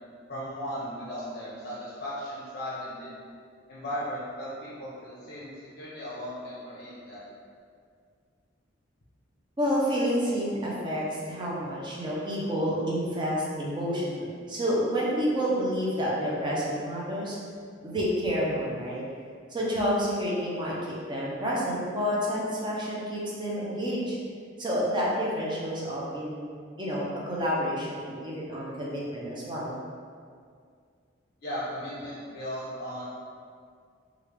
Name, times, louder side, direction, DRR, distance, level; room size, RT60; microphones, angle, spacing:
voice 1, 0.3-3.1 3.7-7.2 31.4-33.0, equal, 50° left, -8 dB, 0.6 m, -36 dB
voice 2, 9.6-17.4 17.8-19.0 19.5-24.2 24.6-26.5 26.8-29.7, equal, 25° right, -5 dB, 0.6 m, -29 dB
3.3 x 2.4 x 3.2 m, 2.2 s
head